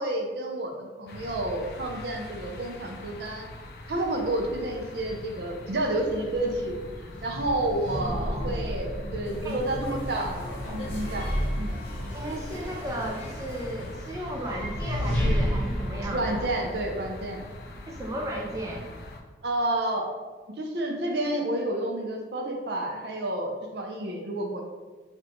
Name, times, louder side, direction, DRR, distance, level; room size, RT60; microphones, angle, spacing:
voice 1, 0.0-3.5 3.9-6.8 7.2-10.4 10.7-11.3 11.6-11.7 16.0-17.4 19.4-20.1 20.6-24.6, right 1 dB, 60° right, 2 dB, 0.6 m, -30 dB
sound 1, 1.1-19.2, left 1 dB, 55° left, 0.4 m, -43 dB
sound 2, 5.8-17.9, equal, 10° left, 1.1 m, -33 dB
sound 3, 9.2-14.2, left 1 dB, 35° left, 0.9 m, -41 dB
voice 2, 12.1-16.5 17.9-18.9, right 1 dB, 15° right, -1 dB, 0.3 m, -34 dB
5.3 x 2.4 x 3.0 m, 1.3 s
head